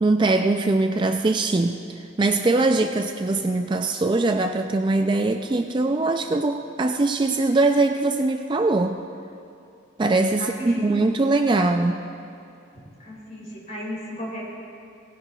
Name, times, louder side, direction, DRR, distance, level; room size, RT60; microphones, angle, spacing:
voice 1, 0.0-1.8 2.2-9.0 10.0-12.1, right 2 dB, 25° right, 6 dB, 0.3 m, -22 dB
voice 2, 10.4-11.1 12.7-14.4, equal, 40° left, -4 dB, 3.4 m, -35 dB
18.0 x 16.0 x 2.3 m, 2.6 s
head